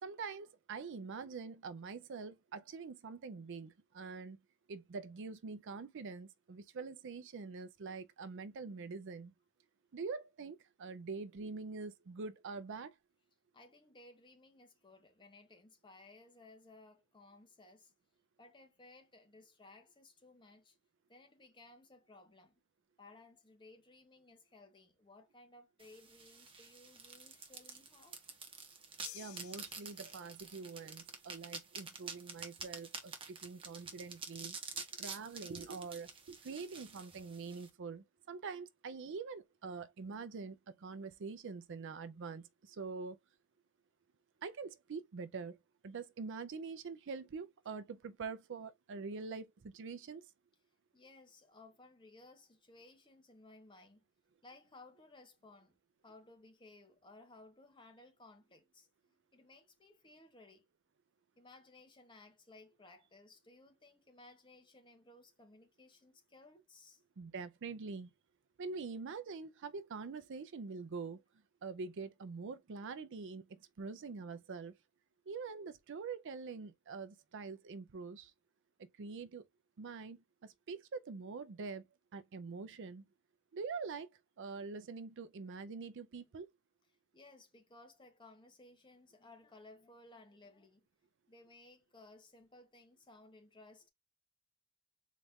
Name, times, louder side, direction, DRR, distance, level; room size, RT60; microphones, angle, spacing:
voice 1, 0.0-4.4 4.7-9.3 9.9-12.9 29.1-34.6 35.0-43.2 44.4-45.6 45.8-50.3 67.2-68.1 68.6-71.2 71.6-74.7 75.3-78.3 79.0-79.4 79.8-81.8 82.1-83.0 83.5-84.1 84.4-86.5, right 4 dB, 55° right, 0.4 m, -45 dB
voice 2, 13.5-17.9 18.4-20.8 21.1-22.6 23.0-28.2 34.9-35.0 50.9-54.0 54.4-55.8 56.0-60.6 61.4-67.0 87.1-90.9 91.3-93.9, left 2 dB, 20° left, 0.8 m, -59 dB
sound 1, 25.8-37.7, right 5 dB, 25° right, 0.8 m, -48 dB
sound 2, 29.0-30.6, left 16 dB, 70° left, 0.3 m, -54 dB
4.1 x 2.4 x 3.4 m
head